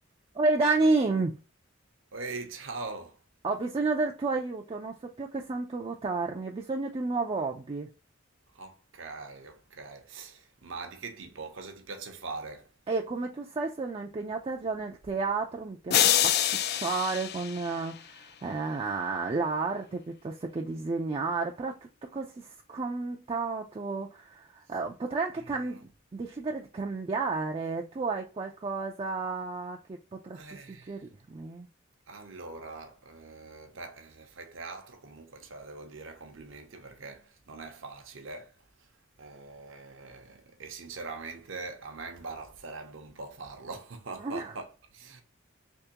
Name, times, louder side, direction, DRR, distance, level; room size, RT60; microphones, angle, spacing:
voice 1, 0.3-1.4 3.4-7.9 12.9-21.8 22.1-30.4 30.7-31.7 44.2-44.5, right 3 dB, 30° right, 0.4 m, -31 dB
voice 2, 2.1-3.2 8.5-12.7 25.5-25.8 30.3-31.0 32.1-38.9 39.2-45.2, right 3 dB, 70° right, 0.7 m, -42 dB
sound 1, 15.9-18.2, left 11 dB, 55° left, 0.3 m, -26 dB
3.5 x 2.9 x 2.8 m
head